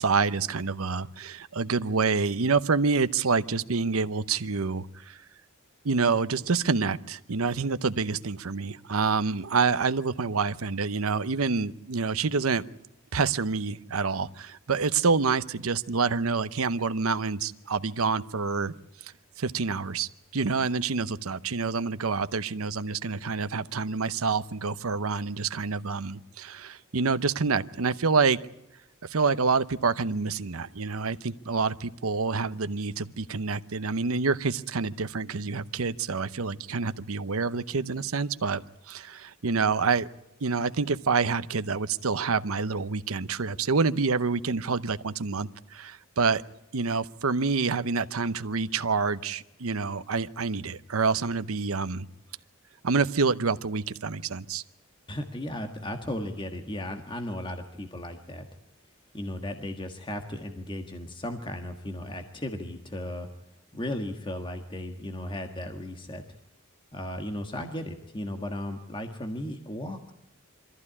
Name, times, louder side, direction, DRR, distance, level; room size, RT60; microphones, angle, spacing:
voice 1, 0.0-5.2 5.8-12.6 13.1-18.7 19.0-19.1 19.4-28.4 29.0-38.6 38.9-40.1 40.4-46.4 46.7-52.1 52.8-54.6, right 4 dB, 85° right, 13 dB, 0.8 m, -27 dB
voice 2, 55.1-58.4 59.1-63.3 63.7-66.2 66.9-70.1, left 1 dB, 25° left, 5 dB, 1.5 m, -35 dB
24.0 x 14.5 x 9.8 m, 0.87 s
head